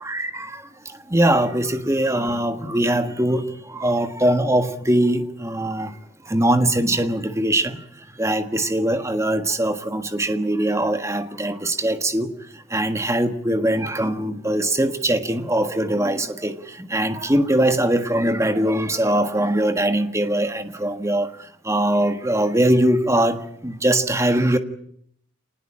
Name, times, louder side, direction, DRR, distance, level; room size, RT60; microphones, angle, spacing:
voice 1, 0.0-5.9 6.2-7.8 8.2-12.3 12.7-21.3 21.6-24.6, right 1 dB, 15° right, 1.6 m, -21 dB
27.0 x 19.5 x 8.9 m
head